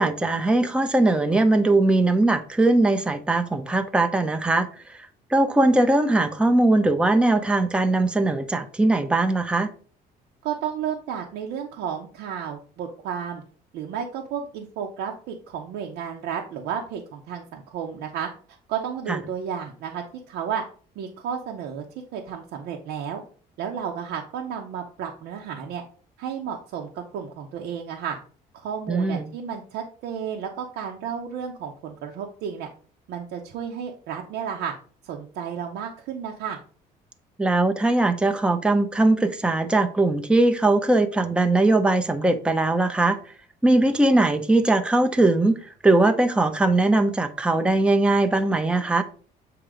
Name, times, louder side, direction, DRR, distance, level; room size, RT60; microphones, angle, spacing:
voice 1, 0.0-9.7 19.1-19.2 28.9-29.3 37.4-43.2 43.6-49.0, right 2 dB, 5° right, 0.6 m, -20 dB
voice 2, 10.4-13.4 13.7-18.3 18.7-20.6 21.0-21.8 22.1-23.2 23.6-25.8 26.2-28.2 28.5-32.7 33.1-34.7 35.0-36.6, right 8 dB, 85° right, 0.9 m, -32 dB
7.7 x 2.9 x 4.9 m
cardioid pair, 110°, 17 cm